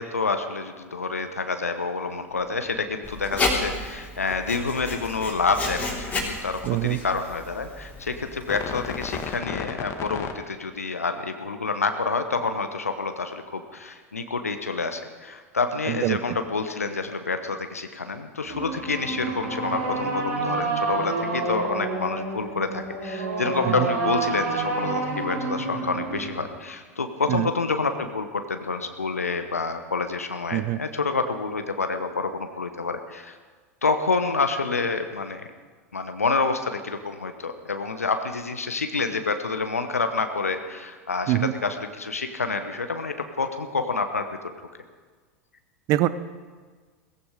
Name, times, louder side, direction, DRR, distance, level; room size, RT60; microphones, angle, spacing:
voice 1, 0.0-33.4 33.8-35.4 35.9-41.3 41.6-44.3, left 4 dB, 85° left, 8 dB, 1.0 m, -28 dB
sound 1, 2.3-6.5 8.5-10.3, left 7 dB, 35° left, 1.4 m, -37 dB
Writing, 3.0-9.4, left 3 dB, 20° left, 3.6 m, -32 dB
voice 2, 6.6-7.0 15.9-16.2 23.7-23.9 27.3-27.5 30.5-30.8 41.3-41.5 45.9-46.1, right 16 dB, 45° right, 15 dB, 0.8 m, -23 dB
sound 2, 18.5-26.4, right 3 dB, 70° right, 5.0 m, -29 dB
17.5 x 15.0 x 4.9 m, 1.5 s
figure-of-eight pair, 85°, 8 cm